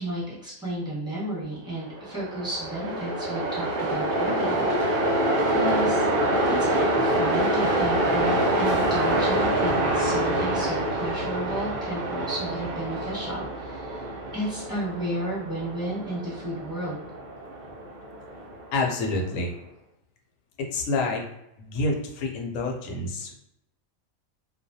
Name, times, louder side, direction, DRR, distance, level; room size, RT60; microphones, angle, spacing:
voice 1, 0.0-4.7 5.5-6.1 6.5-17.0, right 1 dB, 5° right, -9 dB, 1.0 m, -33 dB
Train, 1.9-19.1, right 1 dB, 75° right, 0.4 m, -26 dB
voice 2, 18.7-19.5 20.6-21.2 21.6-23.3, left 2 dB, 75° left, 1 dB, 0.9 m, -28 dB
2.3 x 2.1 x 2.6 m, 0.84 s
omnidirectional pair, 1.4 m